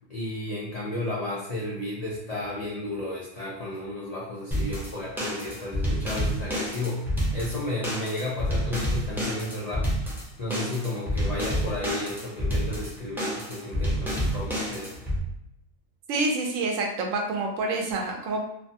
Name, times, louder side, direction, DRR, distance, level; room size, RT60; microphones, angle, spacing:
voice 1, 0.1-9.9 10.4-15.0, left 2 dB, 85° left, -6 dB, 0.3 m, -33 dB
Funk Shuffle D, 4.5-15.2, equal, ahead, 0.5 m, -29 dB
voice 2, 16.1-18.4, right 2 dB, 75° right, 1 dB, 0.9 m, -27 dB
3.1 x 2.2 x 2.7 m, 0.79 s
omnidirectional pair, 1.4 m